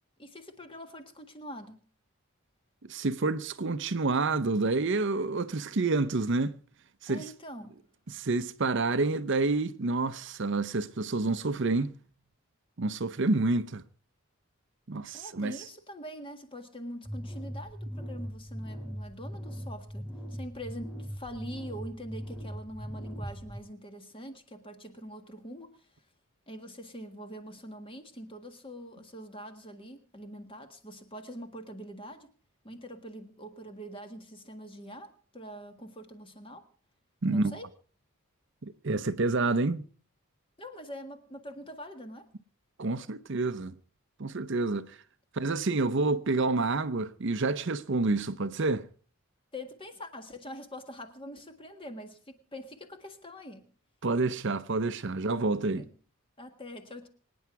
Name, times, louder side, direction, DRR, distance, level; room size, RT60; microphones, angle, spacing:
voice 1, 0.2-1.8 7.1-7.8 15.1-25.9 26.5-32.3 32.6-36.7 37.3-37.7 40.6-42.3 49.5-53.7 55.7-55.9 56.4-57.1, equal, 25° left, 1.7 m, -44 dB
voice 2, 2.8-6.6 7.0-7.2 8.1-12.0 12.8-13.8 14.9-15.6 37.2-37.6 38.6-39.8 42.8-43.8 44.2-45.0 45.3-48.9 54.0-55.8, right 3 dB, 55° right, 0.7 m, -28 dB
sound 1, 17.0-23.6, equal, 5° left, 4.7 m, -40 dB
24.5 x 9.5 x 4.6 m
head